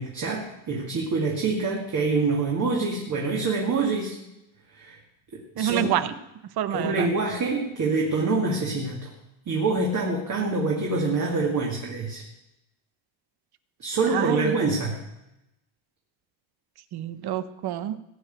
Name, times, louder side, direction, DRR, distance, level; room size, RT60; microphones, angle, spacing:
voice 1, 0.0-4.2 4.7-5.0 5.3-5.9 6.7-9.1 9.5-12.2 13.8-15.0, right 3 dB, 40° right, -1 dB, 2.2 m, -26 dB
voice 2, 5.6-6.1 6.6-7.1 14.1-14.5 16.9-18.0, right 11 dB, 55° right, 13 dB, 1.0 m, -27 dB
17.0 x 6.0 x 9.3 m, 0.90 s
cardioid pair, 130°, 45 cm